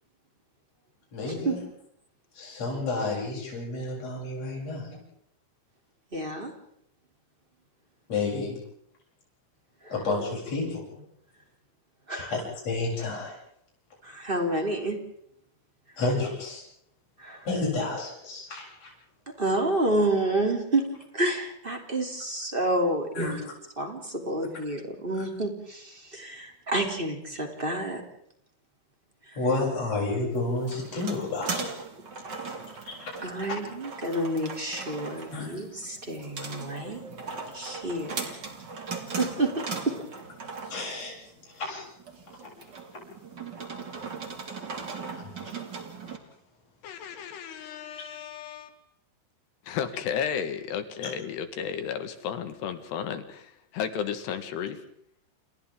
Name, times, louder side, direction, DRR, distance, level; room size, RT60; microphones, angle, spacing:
voice 1, 1.1-1.6 2.4-4.9 8.1-8.6 9.9-10.8 12.1-13.4 16.0-16.6 17.4-18.9 23.2-23.4 29.4-31.7 32.9-33.2 35.3-35.6 40.7-41.1 41.5-41.9 45.1-45.3, left 3 dB, 35° left, -3 dB, 8.8 m, -30 dB
voice 2, 6.1-6.5 9.8-9.9 12.1-12.3 14.0-15.0 17.2-17.4 19.4-20.9 21.1-23.3 23.8-28.0 29.3-29.4 33.2-37.0 37.5-38.4 39.2-39.5 39.8-40.0, right 1 dB, 15° right, 3 dB, 2.3 m, -29 dB
sound 1, 30.3-46.2, right 4 dB, 35° right, 2.0 m, -39 dB
voice 3, 46.8-48.7 49.7-54.8, left 8 dB, 70° left, 9 dB, 3.4 m, -33 dB
29.5 x 29.0 x 3.7 m, 0.70 s
omnidirectional pair, 5.4 m